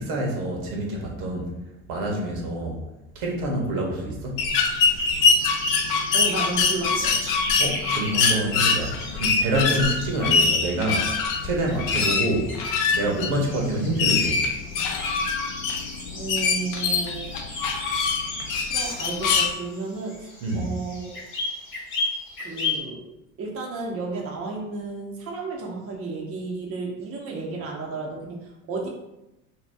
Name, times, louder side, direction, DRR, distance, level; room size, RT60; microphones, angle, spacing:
voice 1, 0.0-1.5 1.9-2.8 3.1-4.5 7.6-11.1 11.4-12.6 12.9-14.4 20.4-20.7, right 1 dB, 70° right, 0 dB, 1.0 m, -27 dB
sound 1, 4.4-19.5, left 5 dB, 45° left, 0.5 m, -24 dB
sound 2, 4.4-22.8, left 2 dB, 25° left, 1.0 m, -35 dB
voice 2, 6.1-7.2 16.1-17.3 18.7-21.2 22.4-23.1 23.4-28.9, right 3 dB, 30° right, -1 dB, 0.6 m, -33 dB
2.7 x 2.2 x 3.4 m, 0.93 s
hypercardioid pair, 85°, 45 cm